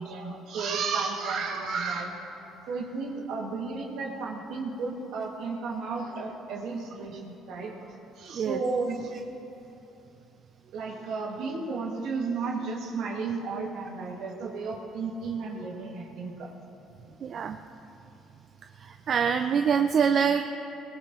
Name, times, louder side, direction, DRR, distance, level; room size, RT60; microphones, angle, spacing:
voice 1, 0.0-2.1 2.7-9.1 10.7-16.5, right 4 dB, 70° right, -1 dB, 2.5 m, -33 dB
voice 2, 17.2-17.6 18.8-20.5, right 7 dB, 55° right, 7 dB, 0.7 m, -25 dB
20.5 x 20.0 x 3.3 m, 2.9 s
supercardioid pair, 70°, 0 cm